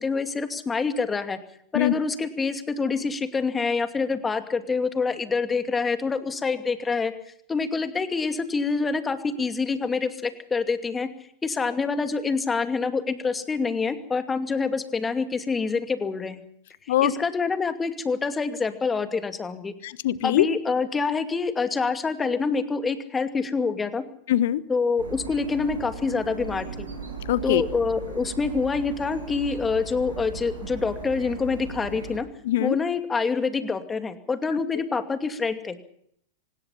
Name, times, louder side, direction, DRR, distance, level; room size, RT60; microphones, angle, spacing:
voice 1, 0.0-1.4 1.7-7.1 7.5-11.1 11.4-16.4 17.0-19.7 20.2-24.0 24.7-26.9 27.4-32.3 32.6-35.8, left 4 dB, 15° left, 8 dB, 2.5 m, -26 dB
voice 2, 19.8-20.5 24.3-24.6 27.3-27.6 32.4-32.8, left 13 dB, 55° left, 18 dB, 1.2 m, -22 dB
sound 1, 25.0-32.2, right 4 dB, 75° right, 7.2 m, -38 dB
25.0 x 20.0 x 5.7 m, 0.67 s
figure-of-eight pair, 90°, 0 cm